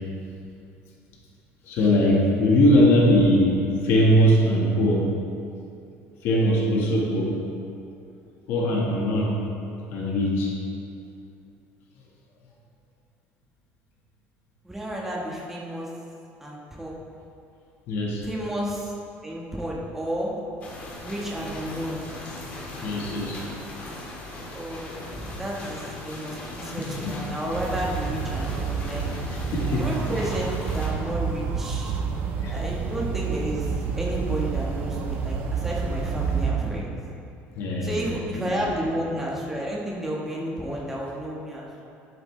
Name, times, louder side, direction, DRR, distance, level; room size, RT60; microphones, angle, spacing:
voice 1, 1.6-5.2 6.2-7.3 8.5-9.4 9.9-10.5 17.9-18.2 22.8-23.4 26.8-27.2 29.3-30.0 32.4-32.6 36.2-36.6 37.5-38.7, equal, 55° left, -2 dB, 1.4 m, -21 dB
voice 2, 14.6-15.9 16.4-17.0 18.2-18.9 19.2-20.3 21.0-22.1 24.5-29.1 29.8-32.0 32.5-33.7 34.0-36.9 37.8-41.8, right 1 dB, 5° right, -4 dB, 1.2 m, -31 dB
sound 1, 20.6-30.9, left 2 dB, 30° left, 1.7 m, -38 dB
sound 2, 27.5-36.5, right 5 dB, 50° right, 1.0 m, -29 dB
11.5 x 7.7 x 3.2 m, 2.6 s
cardioid pair, 165°, 5 cm